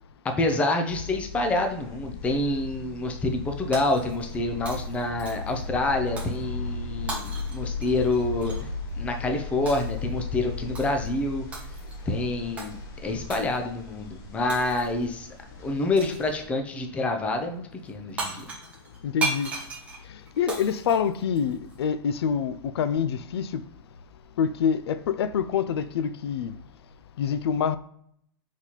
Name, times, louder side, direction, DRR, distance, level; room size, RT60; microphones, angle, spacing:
voice 1, 0.2-8.7 9.0-11.5 12.1-15.3 15.6-18.4, left 2 dB, 10° left, 0.5 m, -27 dB
sound 1, 0.9-16.5, left 3 dB, 25° left, 0.9 m, -37 dB
Shatter, 3.7-4.4 4.7-5.6 6.2-6.4 7.1-8.7 9.7-10.0 10.7-11.1 11.5-12.0 12.6-12.7 13.3-13.6 14.5-15.0 16.0-16.3 17.9-18.0 18.2-21.8, right 3 dB, 10° right, 0.9 m, -36 dB
voice 2, 19.0-19.6 20.0-23.7 24.4-26.5 27.2-27.8, left 7 dB, 75° left, 0.4 m, -26 dB
4.1 x 4.0 x 3.0 m
hypercardioid pair, 155°, 13 cm